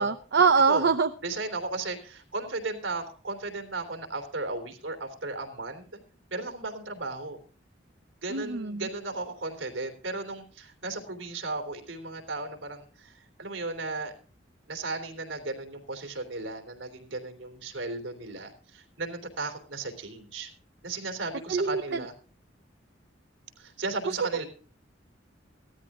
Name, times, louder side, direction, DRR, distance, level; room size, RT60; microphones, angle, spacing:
voice 1, 0.0-1.1 8.3-8.8 21.5-21.8, right 5 dB, 60° right, 9 dB, 0.6 m, -23 dB
voice 2, 1.2-5.8 6.3-7.4 8.2-14.1 14.7-20.5 20.8-22.1 23.6-24.5, right 3 dB, 80° right, 5 dB, 3.2 m, -35 dB
16.0 x 13.0 x 3.6 m, 0.39 s
head